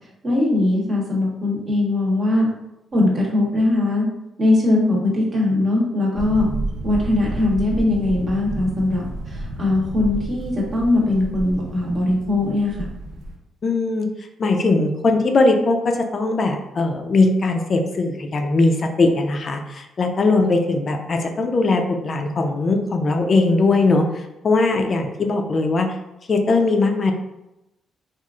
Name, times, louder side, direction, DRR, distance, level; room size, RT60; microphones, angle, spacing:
voice 1, 0.2-2.5 2.9-4.1 4.4-6.5 6.8-12.8, left 2 dB, 40° right, -2 dB, 0.8 m, -20 dB
sound 1, 6.1-13.3, right 1 dB, 80° right, 0.4 m, -31 dB
voice 2, 13.6-25.9 26.3-27.1, left 3 dB, 45° left, 4 dB, 0.3 m, -20 dB
2.9 x 2.3 x 2.3 m, 0.93 s
cardioid pair, 90°, 0 cm